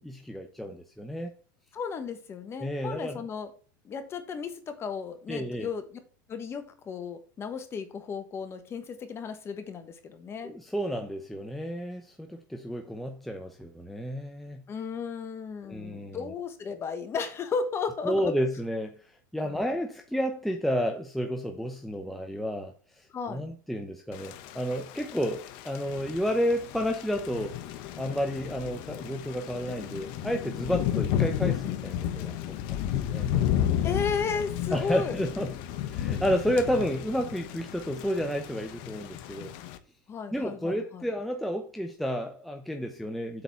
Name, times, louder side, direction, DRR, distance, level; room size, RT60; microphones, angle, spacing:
voice 1, 0.0-1.3 2.6-3.2 5.3-5.7 10.4-14.6 15.7-16.3 18.0-18.9 19.3-22.7 23.3-27.5 28.0-32.3 32.7-32.8 33.1-33.3 34.7-35.5 35.9-39.5 40.3-43.4, equal, ahead, 0.8 m, -31 dB
voice 2, 1.7-3.5 3.8-5.8 6.3-10.5 14.7-18.3 19.4-19.6 23.1-23.5 30.6-30.9 33.8-35.2 40.1-41.0, left 5 dB, 25° left, 1.3 m, -34 dB
Thunder / Rain, 24.1-39.8, left 10 dB, 50° left, 1.0 m, -33 dB
7.9 x 4.0 x 6.9 m
supercardioid pair, 140°, 11 cm